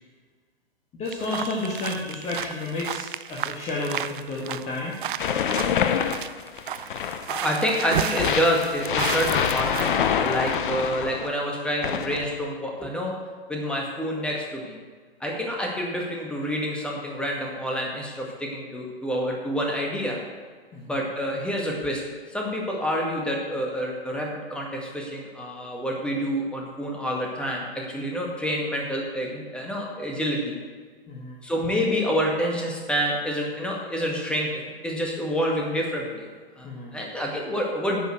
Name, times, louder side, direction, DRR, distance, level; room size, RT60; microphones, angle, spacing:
voice 1, 0.9-4.9 20.7-21.0 31.1-31.4 36.6-36.9, left 2 dB, 20° left, -3 dB, 1.6 m, -31 dB
sound 1, 1.0-10.0 10.3-10.5, right 10 dB, 55° right, 0.5 m, -33 dB
sound 2, 5.2-7.4 8.2-11.3 11.8-12.4, left 8 dB, 55° left, 0.8 m, -26 dB
voice 2, 7.3-13.1 13.5-14.8 15.2-20.2 20.9-22.0 22.3-30.6 31.4-36.3 36.6-38.0, equal, 5° left, -1 dB, 1.8 m, -28 dB
10.5 x 5.7 x 7.8 m, 1.5 s
figure-of-eight pair, 120°, 31 cm